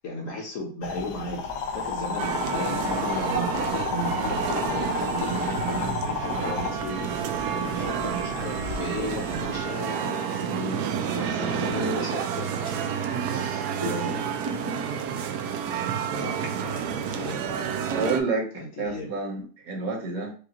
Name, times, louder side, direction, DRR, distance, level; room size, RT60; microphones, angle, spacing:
voice 1, 0.0-1.4 1.7-12.5 13.8-14.2 16.0-17.8 18.5-19.1, left 1 dB, 55° left, -2 dB, 1.3 m, -35 dB
sound 1, 0.8-9.6, left 4 dB, 85° left, 1.2 m, -32 dB
sound 2, 2.2-18.2, right 7 dB, 80° right, 1.1 m, -30 dB
voice 2, 13.1-14.1 14.4-14.8 16.4-16.5 17.9-20.3, right 3 dB, 65° right, 1 dB, 1.3 m, -30 dB
4.9 x 2.3 x 2.9 m, 0.40 s
omnidirectional pair, 1.7 m